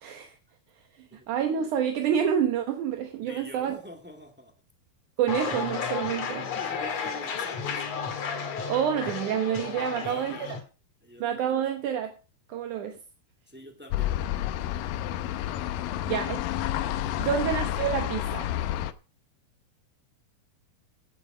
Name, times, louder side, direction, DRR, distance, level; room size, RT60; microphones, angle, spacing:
voice 1, 0.0-0.3 1.3-3.8 5.2-6.5 8.7-10.4 11.2-12.1 12.5-13.0 16.1-16.4 17.2-18.5, right 8 dB, 65° right, 5 dB, 2.1 m, -28 dB
voice 2, 3.2-4.5 6.5-7.9 9.9-10.6 11.0-11.6 13.5-14.1 17.1-17.4, equal, 10° right, 3 dB, 0.6 m, -45 dB
sound 1, 5.3-10.6, left 6 dB, 50° left, 2.4 m, -33 dB
sound 2, 13.9-18.9, left 13 dB, 75° left, 2.2 m, -30 dB
16.0 x 7.3 x 5.0 m, 0.35 s
omnidirectional pair, 4.7 m